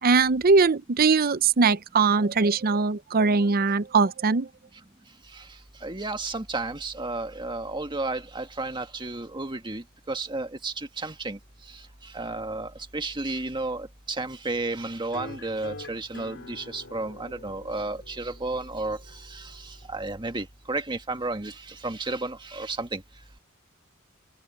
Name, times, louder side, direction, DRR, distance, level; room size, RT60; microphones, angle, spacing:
voice 1, 0.0-4.5, right 4 dB, 45° right, 0.6 m, -21 dB
voice 2, 5.8-11.4 12.1-19.0 19.3-23.0, right 2 dB, 20° right, 1.9 m, -32 dB
sound 1, 15.1-20.1, left 2 dB, 60° left, 4.2 m, -45 dB
open air
head